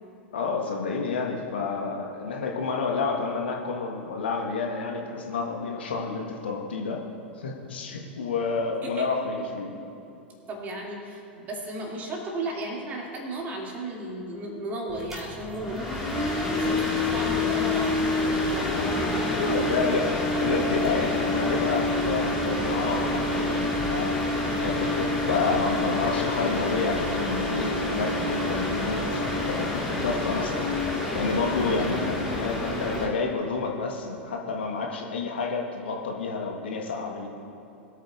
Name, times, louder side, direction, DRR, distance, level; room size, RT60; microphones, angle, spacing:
voice 1, 0.3-7.0 7.4-9.7 19.2-20.1 20.4-24.2 24.6-30.7 31.1-37.3, left 4 dB, 65° left, 1 dB, 1.3 m, -29 dB
voice 2, 10.5-19.8 31.5-32.1, right 1 dB, 25° right, -2 dB, 2.4 m, -35 dB
sound 1, 14.9-33.1, left 2 dB, 5° right, 2.7 m, -27 dB
21.0 x 9.0 x 2.5 m, 2.8 s
figure-of-eight pair, 90°, 6 cm